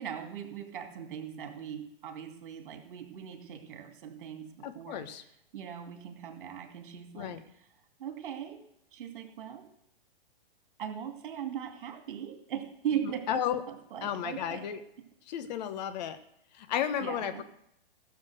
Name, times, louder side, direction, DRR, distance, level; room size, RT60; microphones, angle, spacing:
voice 1, 0.0-5.1 5.5-7.4 8.0-8.6 8.9-9.6 10.8-14.7 17.0-17.4, right 9 dB, 60° right, 5 dB, 2.5 m, -39 dB
voice 2, 4.6-5.2 7.2-7.4 13.0-13.6 14.0-14.8 15.3-16.2 16.5-17.4, left 9 dB, 45° left, 9 dB, 1.2 m, -33 dB
15.5 x 7.3 x 6.3 m, 0.75 s
hypercardioid pair, 115°, 29 cm